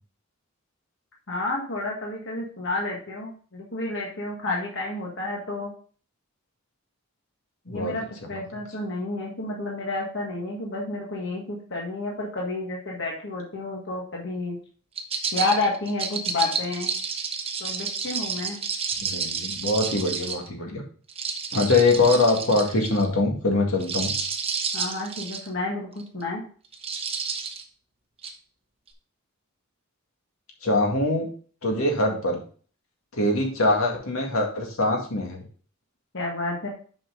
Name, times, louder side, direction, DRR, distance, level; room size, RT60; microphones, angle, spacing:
voice 1, 1.3-5.7 7.7-8.0 8.3-14.6 15.3-16.9 17.6-18.6 24.7-26.4 36.1-36.7, left 2 dB, 55° left, -2 dB, 1.6 m, -30 dB
sound 1, 14.9-20.5 21.1-23.0 23.7-25.5 26.0-26.2 26.7-27.6 28.2-28.3, right 5 dB, 25° right, 0.9 m, -30 dB
voice 2, 19.1-20.8 21.5-24.1 30.6-31.3 31.6-32.4 33.1-35.4, left 2 dB, 75° left, 1 dB, 2.0 m, -23 dB
7.3 x 5.5 x 3.9 m, 0.42 s
head